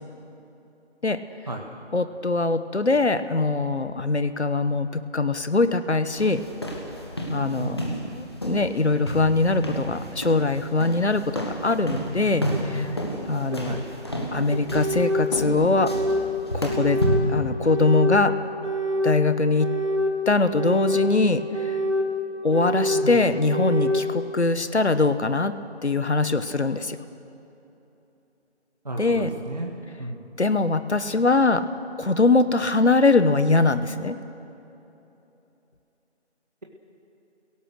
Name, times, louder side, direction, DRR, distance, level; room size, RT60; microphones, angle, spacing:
voice 1, 1.9-6.4 7.3-7.8 8.1-12.9 13.3-13.8 14.3-15.9 16.5-17.0 17.3-18.3 19.0-19.7 20.3-21.7 22.4-25.5 25.8-27.0 29.0-29.3 30.4-31.7 32.0-34.2, left 3 dB, 70° left, 11 dB, 1.2 m, -22 dB
sound 1, 6.2-17.4, equal, 25° left, 1.4 m, -31 dB
voice 2, 7.6-7.9 13.6-13.9 22.9-23.2 28.8-30.3, right 2 dB, 35° right, 1 dB, 1.4 m, -33 dB
sound 2, 12.5-12.6 13.5-13.6 14.5-15.3 15.7-16.2 16.7-17.2 17.6-18.2 18.6-19.2 19.6-20.1 20.5-21.1 21.5-22.1 22.5-23.1 23.5-24.0, equal, 85° right, 4.0 m, -25 dB
29.0 x 17.0 x 6.6 m, 3.0 s
figure-of-eight pair, 165°, 35 cm